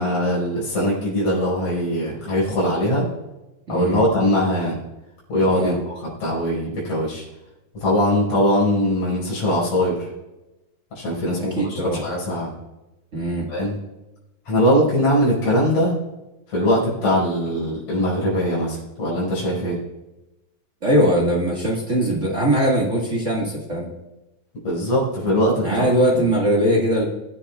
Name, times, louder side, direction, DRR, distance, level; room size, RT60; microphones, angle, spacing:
voice 1, 0.0-3.1 3.7-4.8 5.3-7.2 7.8-10.0 11.0-12.5 13.5-13.8 14.5-15.9 16.5-19.8 24.6-25.8, equal, 60° left, -6 dB, 6.4 m, -21 dB
voice 2, 3.7-4.0 5.5-5.8 11.4-12.0 13.1-13.5 20.8-23.9 25.6-27.0, equal, 35° right, -3 dB, 1.3 m, -21 dB
21.5 x 10.0 x 2.4 m, 1.0 s
omnidirectional pair, 3.6 m